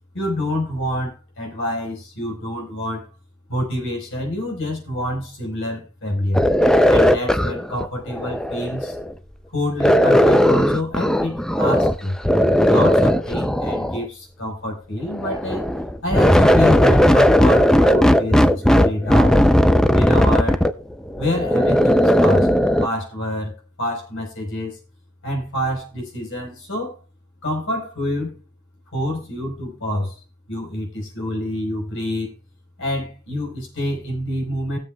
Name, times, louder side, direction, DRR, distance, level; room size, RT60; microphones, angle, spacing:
voice 1, 0.1-3.1 3.5-6.5 6.9-9.0 9.5-12.2 12.7-15.7 16.0-19.5 19.9-20.6 21.2-22.5 22.8-24.8 25.2-27.0 27.4-28.4 28.9-30.2 30.5-32.3 32.8-34.8, left 1 dB, 60° left, 2 dB, 4.4 m, -27 dB
sound 1, 6.3-9.1 9.8-12.0 12.2-14.0 15.1-22.9, equal, 5° left, 0.5 m, -16 dB
19.5 x 7.5 x 2.3 m, 0.31 s
head